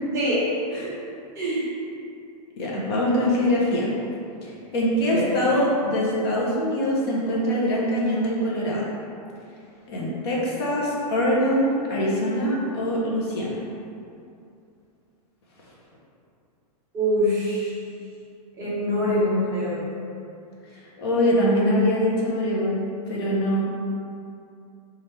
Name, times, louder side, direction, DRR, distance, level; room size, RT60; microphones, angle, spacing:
voice 1, 1.3-1.7 5.1-5.3 16.9-17.7 18.6-19.8, equal, 15° right, -10 dB, 0.6 m, -24 dB
voice 2, 2.6-3.9 4.4-8.8 9.9-13.6 21.0-22.8 23.1-23.7, equal, 40° left, -5 dB, 0.7 m, -23 dB
3.2 x 2.4 x 4.2 m, 2.6 s
supercardioid pair, 170°, 21 cm